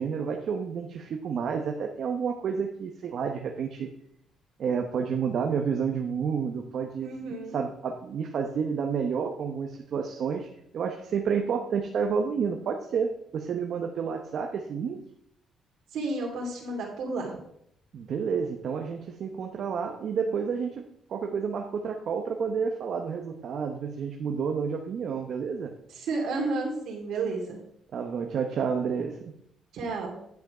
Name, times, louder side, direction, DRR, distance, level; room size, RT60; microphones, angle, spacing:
voice 1, 0.0-3.9 4.6-7.1 7.5-10.5 10.7-15.0 17.9-25.7 27.9-29.3, right 6 dB, 65° right, 3 dB, 0.9 m, -30 dB
voice 2, 7.0-7.6 15.9-17.4 25.9-27.6 29.7-30.1, right 3 dB, 80° right, 1 dB, 2.6 m, -31 dB
10.5 x 5.7 x 4.9 m, 0.73 s
cardioid pair, 90°, 0 cm